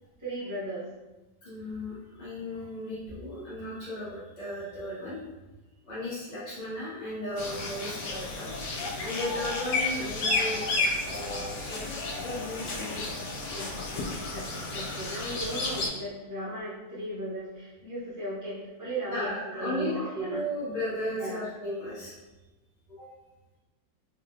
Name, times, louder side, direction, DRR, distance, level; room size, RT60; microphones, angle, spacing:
voice 1, 0.2-0.8 13.5-20.4 21.2-21.5, right 1 dB, 15° right, -8 dB, 0.8 m, -36 dB
voice 2, 1.4-5.2 5.8-8.7 9.0-11.8 12.2-13.0 19.0-20.0 20.3-22.1 23.0-23.1, left 1 dB, 40° left, -9 dB, 0.6 m, -35 dB
sound 1, 7.4-15.9, left 3 dB, 70° left, 0.9 m, -32 dB
3.8 x 3.1 x 2.7 m, 1.1 s
omnidirectional pair, 2.1 m